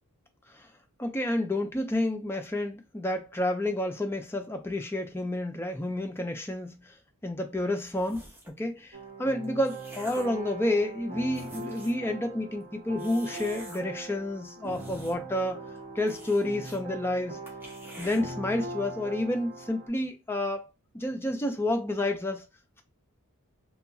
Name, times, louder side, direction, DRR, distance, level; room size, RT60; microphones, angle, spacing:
voice 1, 1.0-6.9 7.2-15.6 16.0-17.4 18.0-20.7 20.9-22.5, left 1 dB, 10° left, 0.4 m, -30 dB
sound 1, 7.9-8.6 9.3-10.4 11.0-11.1 11.3-12.1 13.0-13.8 14.5-15.4 15.7-15.8 16.1-16.8 17.1-17.2 17.5-18.2, right 1 dB, 10° right, 0.8 m, -47 dB
sound 2, 8.9-19.9, right 2 dB, 40° right, 0.8 m, -41 dB
2.8 x 2.3 x 2.6 m
head